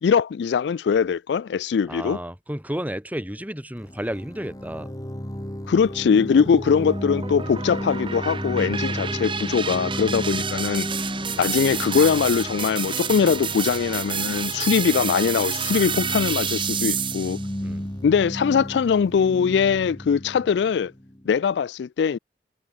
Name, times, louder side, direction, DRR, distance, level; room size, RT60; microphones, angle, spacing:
voice 1, 0.0-2.2 5.7-10.9 11.4-17.4 18.0-20.9 21.3-22.2, left 6 dB, 75° left, 0.3 m, -21 dB
voice 2, 1.9-4.9 17.6-17.9, equal, 10° right, 4.4 m, -32 dB
sound 1, 3.8-21.4, equal, 20° left, 2.3 m, -34 dB
sound 2, 6.4-17.5, right 7 dB, 30° right, 1.2 m, -29 dB
head